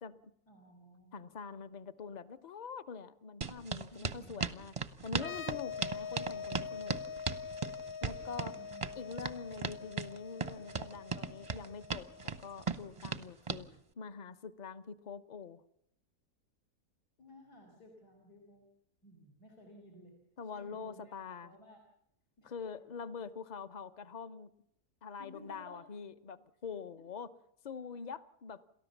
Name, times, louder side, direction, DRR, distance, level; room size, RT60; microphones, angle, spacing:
voice 1, 0.5-1.2 3.9-4.4 8.5-9.1 17.2-18.7 19.0-20.1 20.5-21.2 21.4-21.8 22.4-22.5 25.2-25.8, left 1 dB, 80° left, 0 dB, 4.4 m, -56 dB
voice 2, 1.1-4.7 5.0-7.0 8.0-8.6 8.9-12.1 12.4-13.7 14.0-15.6 20.4-21.5 22.4-24.5 25.0-27.3 27.6-28.6, left 5 dB, 35° left, 12 dB, 0.7 m, -45 dB
sound 1, 3.4-13.6, right 5 dB, 30° right, 0.6 m, -37 dB
sound 2, 5.1-12.6, left 7 dB, 55° left, 1.7 m, -44 dB
29.5 x 13.5 x 7.2 m, 0.77 s
omnidirectional pair, 1.7 m